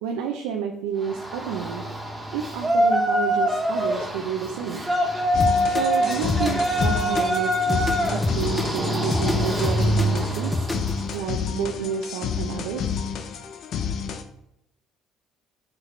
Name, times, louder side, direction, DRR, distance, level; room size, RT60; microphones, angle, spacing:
voice 1, 0.0-1.8 2.3-4.9 5.7-10.7 11.1-12.9, right 7 dB, 80° right, 2 dB, 0.7 m, -30 dB
Yell, 1.0-11.2, equal, 15° right, 2.0 m, -25 dB
sound 1, 5.3-14.2, left 7 dB, 60° left, 0.7 m, -30 dB
sound 2, 5.4-11.0, left 2 dB, 20° left, 0.7 m, -28 dB
8.4 x 4.9 x 3.2 m, 0.80 s
hypercardioid pair, 65°, 0 cm